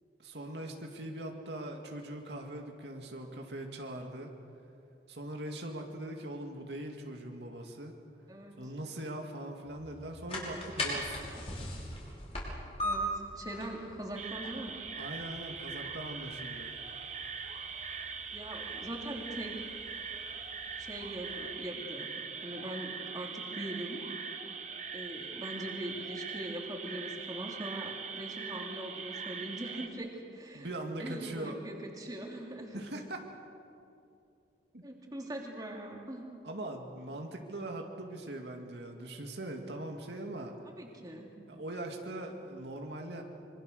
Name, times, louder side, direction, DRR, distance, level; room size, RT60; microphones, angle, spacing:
voice 1, 0.2-4.3 5.1-7.9 8.6-11.2 14.9-16.7 30.5-31.6 32.7-33.2 34.7-34.8 36.4-40.5 41.5-43.2, right 1 dB, 75° right, 2 dB, 2.2 m, -41 dB
voice 2, 8.3-8.7 12.8-14.8 18.3-19.6 20.8-24.1 24.9-30.7 31.0-32.8 34.8-36.3 40.8-41.3, right 1 dB, 20° right, -1 dB, 3.2 m, -41 dB
sound 1, 9.6-21.4, equal, 35° left, 5.8 m, -41 dB
sound 2, 14.2-29.9, right 5 dB, 40° right, 1.5 m, -41 dB
26.0 x 24.0 x 6.6 m, 2.6 s
head